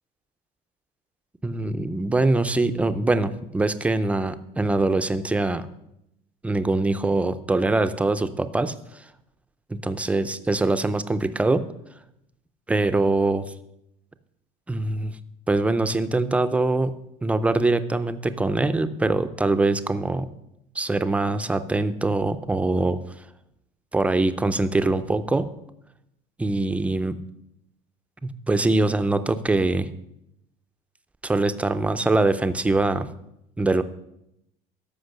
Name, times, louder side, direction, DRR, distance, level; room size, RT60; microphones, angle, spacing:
voice 1, 1.4-5.7 6.4-8.7 9.7-11.7 12.7-13.5 14.7-15.2 15.5-16.9 17.2-20.3 20.8-23.0 23.9-25.5 26.4-27.1 28.2-29.9 31.2-33.1 33.6-33.8, right 2 dB, 5° right, 11 dB, 0.5 m, -23 dB
13.5 x 5.5 x 6.6 m, 0.83 s
cardioid pair, 145°, 19 cm